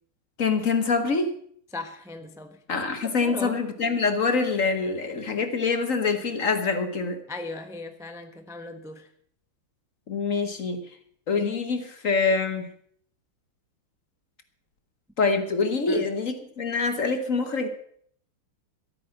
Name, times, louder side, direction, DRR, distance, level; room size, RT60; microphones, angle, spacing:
voice 1, 0.4-1.3 2.7-7.2 10.1-10.8 11.3-12.7 15.2-17.7, left 4 dB, 45° left, 8 dB, 1.2 m, -25 dB
voice 2, 1.7-2.6 3.0-3.6 7.3-9.1 15.9-16.0, left 2 dB, 5° right, 6 dB, 0.4 m, -38 dB
13.5 x 8.8 x 7.6 m, 0.63 s
omnidirectional pair, 2.4 m